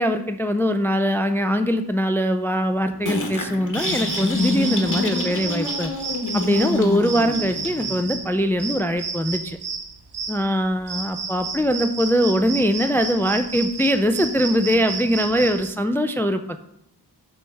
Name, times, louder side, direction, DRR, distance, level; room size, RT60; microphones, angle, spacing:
voice 1, 0.0-5.9 6.3-9.6 10.3-16.4, equal, 5° left, 9 dB, 0.4 m, -22 dB
sound 1, 2.7-6.2 6.7-6.8 7.9-8.7, left 1 dB, 30° left, 1.4 m, -40 dB
sound 2, 3.1-8.0, left 3 dB, 45° left, 1.2 m, -27 dB
sound 3, 3.7-15.7, right 5 dB, 70° right, 0.8 m, -32 dB
7.5 x 3.5 x 5.4 m, 0.74 s
wide cardioid pair, 50°, 41 cm